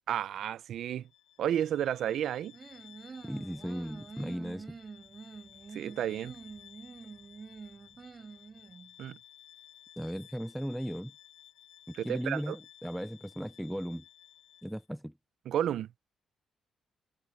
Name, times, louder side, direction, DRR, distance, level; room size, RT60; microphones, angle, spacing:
voice 1, 0.1-1.0 1.4-2.5 5.7-6.4 9.0-9.2 12.0-12.6 15.5-15.9, right 10 dB, 75° right, 0.5 m, -32 dB
Bowed string instrument, 1.0-14.9, left 11 dB, 85° left, 3.7 m, -56 dB
sound 1, 2.5-8.9, right 5 dB, 40° right, 3.8 m, -47 dB
voice 2, 3.2-4.8 10.0-11.1 11.9-14.0 14.6-15.1, equal, ahead, 0.5 m, -37 dB
cardioid pair, 85°, 0 cm